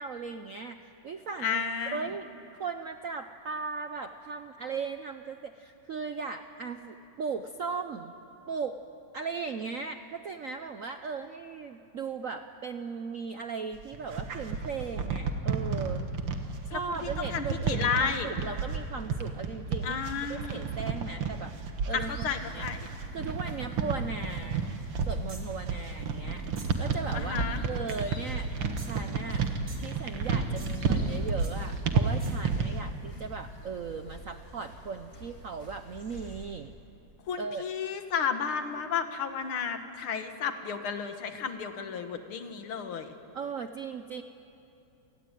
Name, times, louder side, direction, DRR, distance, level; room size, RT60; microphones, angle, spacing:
voice 1, 0.0-1.6 1.9-2.3 2.6-8.1 8.5-8.8 9.1-16.1 16.7-21.5 21.9-22.7 23.1-24.7 25.1-28.5 28.8-29.4 29.8-36.7 37.4-37.6 43.3-44.2, right 5 dB, 65° right, 8 dB, 0.8 m, -37 dB
voice 2, 1.4-2.1 16.7-18.3 19.8-20.6 21.9-22.9 27.1-27.6 37.3-43.1, left 6 dB, 75° left, 7 dB, 2.3 m, -32 dB
sound 1, 13.7-32.8, right 5 dB, 80° right, 2.5 m, -31 dB
sound 2, 22.0-36.5, equal, 40° left, 5.8 m, -45 dB
sound 3, 25.3-25.6 26.6-26.9 27.9-28.2 28.8-29.4 29.7-30.0 30.6-31.0 31.4-31.6 32.2-32.5, right 3 dB, 45° right, 2.9 m, -50 dB
28.5 x 19.0 x 9.2 m, 2.8 s
omnidirectional pair, 2.3 m